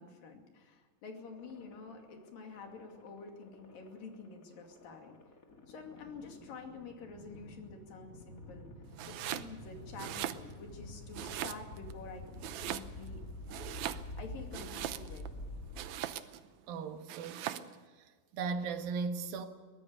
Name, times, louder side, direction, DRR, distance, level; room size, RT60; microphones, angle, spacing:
voice 1, 0.0-5.2 5.7-8.7 9.0-13.2 13.5-13.9 14.2-15.4, left 4 dB, 75° left, 4.2 m, -49 dB
sound 1, 1.3-16.4, left 1 dB, 35° left, 1.5 m, -49 dB
Domestic sounds home sounds, 8.9-9.5 9.9-10.8 11.1-11.9 12.4-13.2 13.5-15.3 15.7-16.5 17.1-17.8, right 12 dB, 75° right, 1.9 m, -40 dB
voice 2, 16.7-17.7 18.3-19.5, right 4 dB, 90° right, 3.2 m, -37 dB
23.0 x 17.5 x 6.8 m
omnidirectional pair, 4.0 m